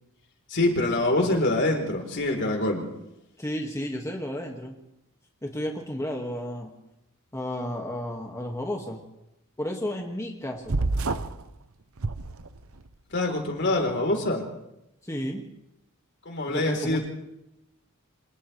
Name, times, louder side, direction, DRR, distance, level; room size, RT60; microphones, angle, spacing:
voice 1, 0.5-2.8 13.1-14.4 16.3-17.1, left 2 dB, 55° left, 2 dB, 4.1 m, -25 dB
voice 2, 3.4-4.8 5.4-6.7 7.3-9.0 9.6-10.9 15.0-15.4 16.5-17.1, left 1 dB, 15° left, 0 dB, 2.2 m, -32 dB
sound 1, 10.7-11.4 12.0-12.9, right 3 dB, 80° right, 0.9 m, -28 dB
28.5 x 27.0 x 3.5 m, 0.88 s
head